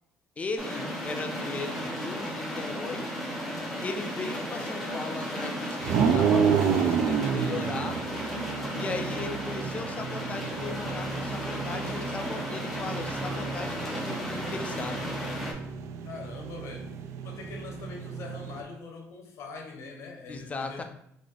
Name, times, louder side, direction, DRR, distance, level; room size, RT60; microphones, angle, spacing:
voice 1, 0.4-3.1 3.8-8.0 8.7-15.1 20.3-20.8, left 4 dB, 25° left, 6 dB, 0.3 m, -37 dB
sound 1, 0.6-15.5, equal, 5° left, 0.8 m, -34 dB
sound 2, 5.8-18.6, right 7 dB, 65° right, 0.3 m, -30 dB
voice 2, 16.0-16.9 17.2-20.8, left 4 dB, 60° left, 2 dB, 0.7 m, -42 dB
3.8 x 2.5 x 3.3 m, 0.72 s
cardioid pair, 135°, 5 cm